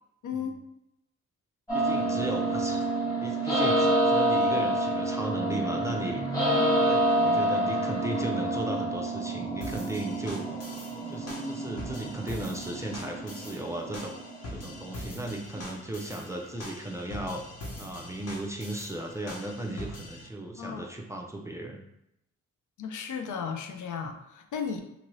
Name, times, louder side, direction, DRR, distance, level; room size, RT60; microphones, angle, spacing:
voice 1, 0.2-0.6 20.6-20.9 22.8-24.8, left 6 dB, 80° left, 5 dB, 0.5 m, -35 dB
sound 1, 1.7-15.6, right 1 dB, 10° left, 1.1 m, -28 dB
voice 2, 1.7-2.9 3.2-6.2 6.7-10.5 11.1-14.1 14.5-17.4 17.8-21.8, right 1 dB, 10° right, 1 dB, 0.4 m, -36 dB
sound 2, 9.6-20.3, left 1 dB, 55° left, 1.0 m, -43 dB
2.6 x 2.6 x 3.0 m, 0.82 s
wide cardioid pair, 100°, 30 cm